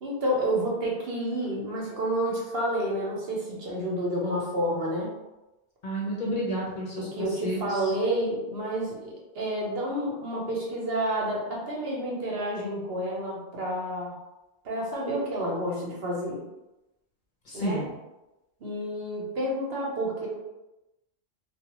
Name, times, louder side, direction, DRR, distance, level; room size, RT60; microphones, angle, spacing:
voice 1, 0.0-5.1 7.0-14.1 14.6-16.4 17.5-17.9 18.6-20.3, right 1 dB, 65° right, -3 dB, 1.0 m, -29 dB
voice 2, 5.8-7.6 17.5-17.9, equal, 50° left, -4 dB, 0.7 m, -31 dB
2.3 x 2.2 x 2.9 m, 0.98 s
omnidirectional pair, 1.1 m